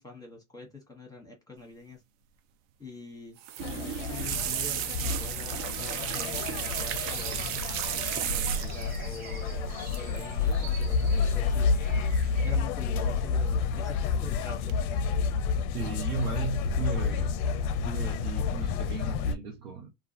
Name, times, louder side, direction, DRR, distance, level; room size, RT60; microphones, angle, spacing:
voice 1, 0.0-2.0 2.8-3.4 3.7-7.4 7.9-11.7 12.4-14.8, left 2 dB, 10° left, 1.0 m, -45 dB
sound 1, 3.4-9.0 9.9-10.2 10.5-10.8 12.0-12.6 12.9-13.5 13.9-14.3 14.7-14.8, right 11 dB, 65° right, 0.5 m, -34 dB
sound 2, 3.6-19.4, left 5 dB, 55° left, 0.5 m, -29 dB
sound 3, 6.9-12.5, right 3 dB, 35° right, 1.3 m, -45 dB
voice 2, 15.7-17.3 17.8-19.9, right 5 dB, 85° right, 0.8 m, -36 dB
2.3 x 2.3 x 2.7 m
hypercardioid pair, 85°, 43 cm